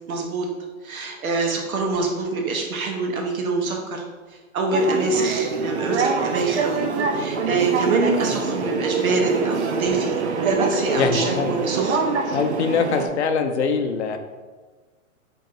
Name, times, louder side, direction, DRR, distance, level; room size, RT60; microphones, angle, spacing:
voice 1, 0.1-0.5 0.8-4.0 4.5-12.0, right 3 dB, 90° right, 1 dB, 1.2 m, -25 dB
sound 1, 4.7-13.1, right 4 dB, 55° right, 0.5 m, -24 dB
voice 2, 11.0-11.5 12.3-14.2, left 5 dB, 55° left, 6 dB, 0.6 m, -23 dB
4.5 x 3.0 x 3.6 m, 1.3 s
hypercardioid pair, 170°, 41 cm